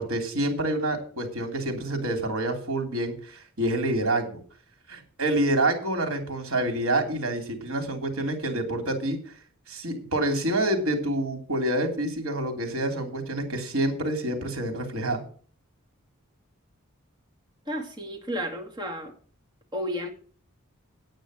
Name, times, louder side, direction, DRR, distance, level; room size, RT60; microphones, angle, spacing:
voice 1, 0.0-4.4 4.9-9.3 9.7-15.2, right 1 dB, 75° right, 4 dB, 3.2 m, -27 dB
voice 2, 17.7-19.1 19.7-20.1, equal, 20° right, 3 dB, 2.5 m, -32 dB
9.4 x 9.0 x 6.3 m, 0.42 s
head